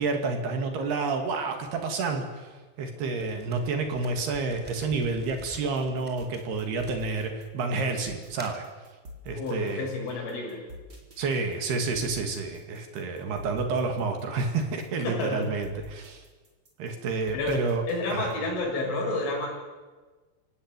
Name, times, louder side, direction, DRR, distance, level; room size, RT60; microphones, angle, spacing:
voice 1, 0.0-2.5 2.8-8.6 9.3-9.9 11.2-16.2 16.8-17.8 18.1-18.3, right 4 dB, 60° right, 5 dB, 4.1 m, -29 dB
sound 1, 3.2-7.5 8.1-8.7, equal, ahead, 3.0 m, -48 dB
sound 2, 5.4-18.5, left 1 dB, 25° right, 4.1 m, -48 dB
voice 2, 9.3-10.6 15.0-15.5 17.3-17.6 17.9-19.5, left 2 dB, 80° left, -1 dB, 9.1 m, -30 dB
27.5 x 17.5 x 9.1 m, 1.3 s
omnidirectional pair, 5.6 m